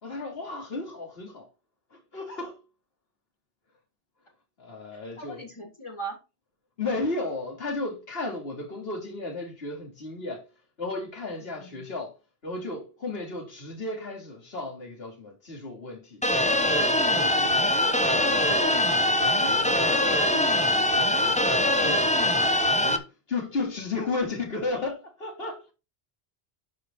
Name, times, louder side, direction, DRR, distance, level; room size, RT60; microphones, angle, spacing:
voice 1, 0.0-1.5 1.9-2.6 4.6-5.4 6.8-10.4 10.8-12.1 12.4-16.2 16.6-17.8 18.1-25.6, left 3 dB, 60° left, 2.8 m, -34 dB
voice 2, 4.9-6.2 11.4-11.8 17.1-17.3, right 3 dB, 25° left, 3.2 m, -40 dB
sound 1, 16.2-23.0, left 1 dB, 5° left, 0.9 m, -23 dB
12.0 x 5.0 x 4.2 m
omnidirectional pair, 1.1 m